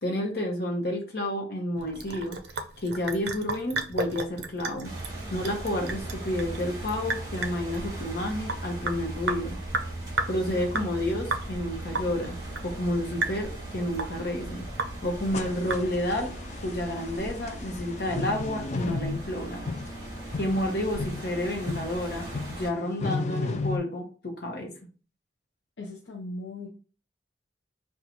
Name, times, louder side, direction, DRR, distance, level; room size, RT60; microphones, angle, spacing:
voice 1, 0.0-2.4 2.8-4.9 5.3-9.6 10.3-12.4 12.6-14.6 15.0-16.3 16.6-19.6 20.4-24.7, left 1 dB, 60° left, 1 dB, 0.9 m, -30 dB
Sink (filling or washing) / Drip, 1.8-16.2, right 3 dB, 60° right, 0.5 m, -35 dB
sound 1, 4.8-22.7, right 1 dB, 20° right, 1.1 m, -38 dB
sound 2, 15.2-23.8, left 3 dB, 40° left, 0.3 m, -35 dB
voice 2, 25.8-26.7, left 2 dB, 90° left, -2 dB, 0.6 m, -38 dB
3.0 x 2.3 x 3.9 m, 0.39 s
head